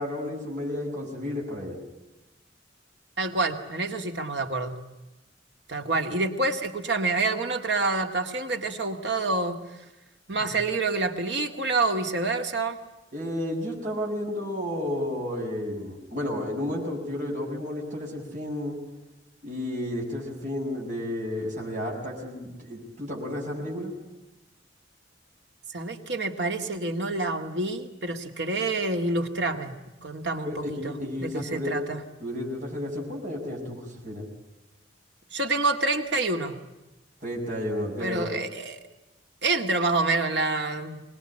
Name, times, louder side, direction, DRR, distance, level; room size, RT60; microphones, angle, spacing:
voice 1, 0.0-1.8 10.4-10.5 13.1-18.8 19.4-23.9 30.4-31.8 32.2-34.2 37.2-38.3, left 1 dB, 45° right, -2 dB, 6.8 m, -32 dB
voice 2, 3.2-4.8 5.7-9.6 10.3-12.8 25.7-29.7 30.0-30.9 31.2-32.0 35.3-36.6 38.0-38.8 39.4-41.0, right 3 dB, 65° right, 5 dB, 2.1 m, -27 dB
24.5 x 20.0 x 10.0 m, 1.0 s
head